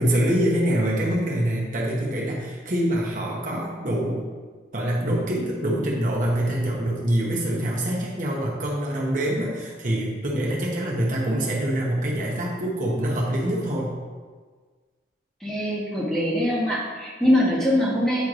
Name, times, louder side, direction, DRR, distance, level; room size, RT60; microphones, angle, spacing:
voice 1, 0.0-4.3 4.7-14.0, right 1 dB, 45° right, -4 dB, 0.9 m, -25 dB
voice 2, 15.4-18.2, left 1 dB, 5° left, -7 dB, 1.3 m, -23 dB
9.1 x 4.6 x 2.5 m, 1.5 s
head